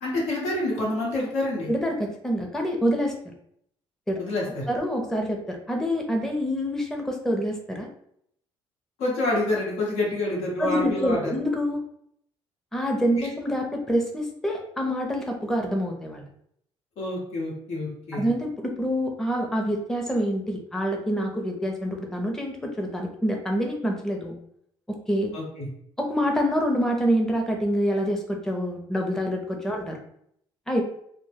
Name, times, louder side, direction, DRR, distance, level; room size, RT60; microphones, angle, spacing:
voice 1, 0.0-1.7 4.2-4.7 9.0-11.3 13.2-13.3 17.0-18.3 25.3-25.7, left 2 dB, 85° left, -4 dB, 0.9 m, -27 dB
voice 2, 1.7-3.2 4.1-4.2 4.7-7.9 10.6-11.8 12.7-16.2 18.1-24.3 24.9-25.3 26.0-30.0 30.7-30.8, equal, 5° left, 1 dB, 0.5 m, -26 dB
2.1 x 2.0 x 3.2 m, 0.69 s
supercardioid pair, 75°, 11 cm